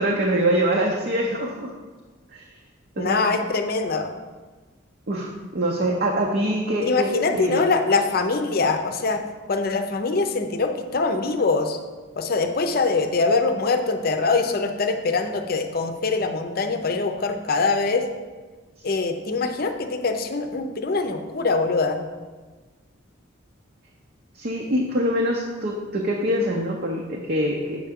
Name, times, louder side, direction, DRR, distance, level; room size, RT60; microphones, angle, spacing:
voice 1, 0.0-1.7 2.3-2.4 3.0-3.2 5.1-7.7 24.3-27.9, right 1 dB, 50° right, -1 dB, 0.7 m, -24 dB
voice 2, 3.0-4.1 6.8-11.8 12.2-18.1 18.8-22.0, left 3 dB, 50° left, 6 dB, 0.6 m, -23 dB
7.7 x 5.6 x 3.6 m, 1.3 s
head